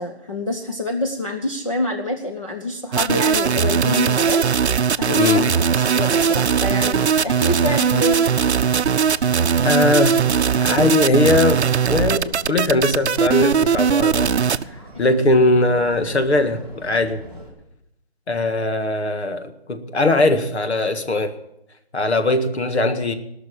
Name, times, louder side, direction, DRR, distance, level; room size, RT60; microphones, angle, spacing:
voice 1, 0.0-4.4 5.0-8.3 14.9-15.2, left 1 dB, 30° left, 2 dB, 0.7 m, -26 dB
sound 1, 2.9-14.6, right 7 dB, 90° right, 0.6 m, -19 dB
Livestock farm animals working animals, 5.0-17.5, equal, 10° left, 1.5 m, -40 dB
voice 2, 9.6-10.2 10.6-11.6 11.9-14.3 15.0-17.2 18.3-21.3 21.9-23.1, left 2 dB, 85° left, 8 dB, 1.7 m, -19 dB
18.5 x 6.2 x 8.6 m, 0.83 s
hypercardioid pair, 180°, 32 cm